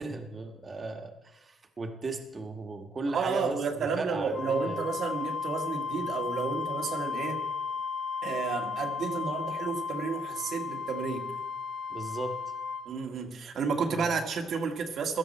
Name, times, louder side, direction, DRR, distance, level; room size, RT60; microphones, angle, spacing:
voice 1, 0.0-4.8 11.9-12.5 13.9-14.1, right 2 dB, 35° right, 5 dB, 1.7 m, -37 dB
voice 2, 3.1-7.4 8.2-11.3 12.9-15.2, right 5 dB, 65° right, 3 dB, 1.9 m, -31 dB
Wind instrument woodwind instrument, 4.3-12.9, left 5 dB, 45° left, 3.6 m, -35 dB
16.5 x 12.5 x 4.3 m, 1.1 s
cardioid pair, 90°, 0 cm